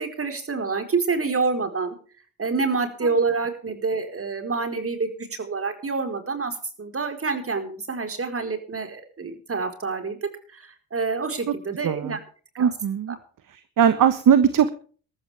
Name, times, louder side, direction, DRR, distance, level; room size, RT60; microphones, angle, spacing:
voice 1, 0.0-2.0 2.4-10.2 10.5-12.2 12.5-12.7, right 4 dB, 35° right, 7 dB, 4.7 m, -27 dB
voice 2, 11.8-12.2 12.6-13.2 13.5-14.7, right 8 dB, 55° right, 12 dB, 1.4 m, -20 dB
21.0 x 13.5 x 3.5 m, 0.42 s
supercardioid pair, 65°, 38 cm